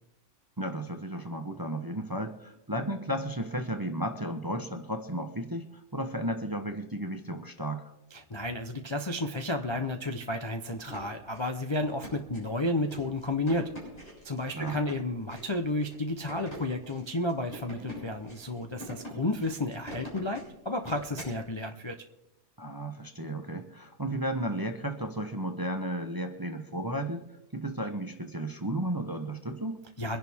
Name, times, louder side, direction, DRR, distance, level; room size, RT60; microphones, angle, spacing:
voice 1, 0.6-7.9 14.5-14.8 22.6-27.2 27.5-29.8, right 1 dB, 20° right, 6 dB, 0.8 m, -34 dB
voice 2, 8.1-13.7 14.2-22.0 30.0-30.2, left 1 dB, 25° left, 5 dB, 0.6 m, -32 dB
sound 1, 10.7-21.4, equal, 45° left, 7.4 m, -45 dB
24.5 x 11.0 x 3.6 m, 0.86 s
omnidirectional pair, 1.6 m